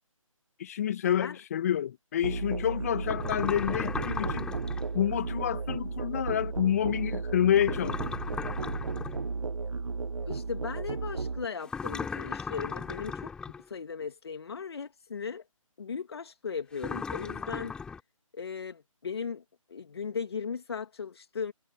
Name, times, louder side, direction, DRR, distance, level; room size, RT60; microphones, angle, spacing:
voice 1, 0.6-4.5 4.9-8.0, left 10 dB, 25° left, 1.5 m, -28 dB
Musical instrument, 2.2-11.5, right 4 dB, 70° right, 1.0 m, -34 dB
sound 1, 3.0-4.9 7.6-9.3 11.6-13.6 16.8-18.0, left 5 dB, 5° left, 3.6 m, -36 dB
voice 2, 10.3-13.3 13.7-15.4 15.8-17.7 18.3-19.4 19.7-21.5, left 6 dB, 45° left, 2.6 m, -37 dB
figure-of-eight pair, 150°, 18 cm